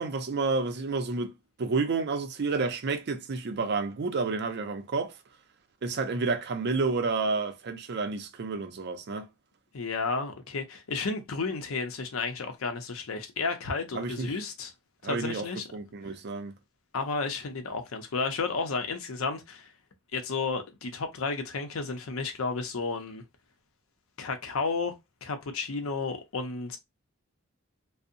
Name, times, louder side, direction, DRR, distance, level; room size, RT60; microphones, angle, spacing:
voice 1, 0.0-1.3 1.6-5.1 5.8-9.3 13.9-14.3 15.0-15.5 15.7-16.5, right 4 dB, 55° right, 0.5 m, -30 dB
voice 2, 9.7-14.7 15.0-15.7 16.9-19.7 20.1-23.2 24.2-24.9 25.2-26.8, left 4 dB, 80° left, 0.6 m, -32 dB
2.6 x 2.0 x 2.5 m
head